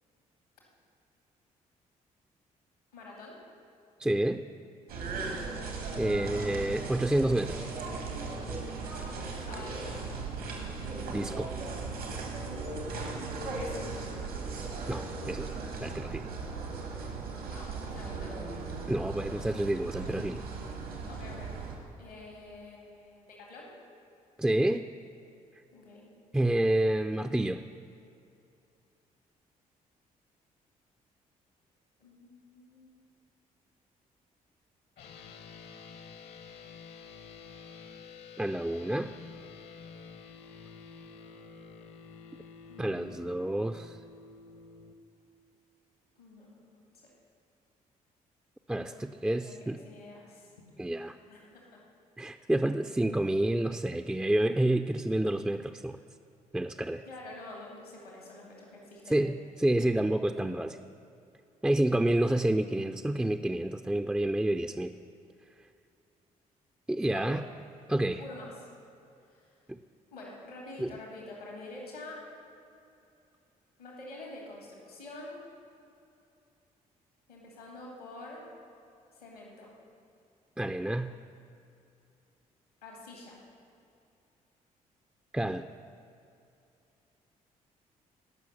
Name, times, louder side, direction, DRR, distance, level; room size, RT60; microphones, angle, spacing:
voice 1, 2.9-3.4 5.2-5.6 9.3-10.0 13.6-13.8 17.5-18.4 21.1-21.5 22.0-23.7 25.7-26.1 32.0-33.1 42.7-43.3 46.2-46.8 48.8-48.9 49.4-50.5 51.3-51.8 57.1-59.2 67.1-67.4 68.2-68.7 69.3-69.5 70.1-72.2 73.8-75.4 77.3-78.5 79.1-79.7 82.8-83.4, left 2 dB, 90° left, -2 dB, 2.3 m, -47 dB
voice 2, 4.0-4.5 6.0-7.7 11.1-11.5 14.9-15.5 15.8-16.3 18.9-20.4 24.4-24.9 26.3-27.6 38.4-39.1 42.8-44.0 48.7-49.8 50.8-51.2 52.2-56.0 56.5-57.0 59.1-60.7 61.6-64.9 66.9-67.4 67.9-68.2 69.7-69.8 70.8-70.9 80.6-81.1 85.3-85.7, right 1 dB, 5° right, 7 dB, 0.4 m, -29 dB
sound 1, 4.9-21.8, right 4 dB, 80° right, 1.8 m, -37 dB
sound 2, 35.0-44.9, left 5 dB, 60° left, 0.9 m, -49 dB
17.5 x 6.0 x 5.9 m, 2.6 s
figure-of-eight pair, 45°, 19 cm